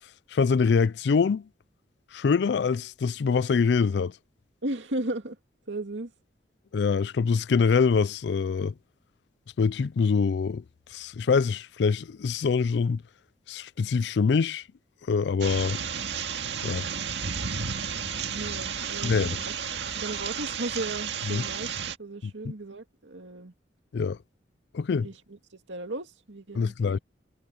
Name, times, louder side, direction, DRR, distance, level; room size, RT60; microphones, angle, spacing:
voice 1, 0.3-1.5 2.1-4.2 6.7-8.7 9.6-10.6 10.9-13.0 13.5-14.6 15.1-15.8 16.6-16.9 19.0-19.4 21.3-21.4 23.9-24.2 24.7-25.1 26.5-27.0, left 5 dB, 70° left, 0.4 m, -24 dB
voice 2, 4.6-5.4 5.7-6.1 18.0-18.1 18.3-21.7 22.0-23.5 25.0-27.0, right 2 dB, 85° right, 2.3 m, -36 dB
sound 1, 15.4-22.0, right 6 dB, 70° right, 2.1 m, -32 dB
head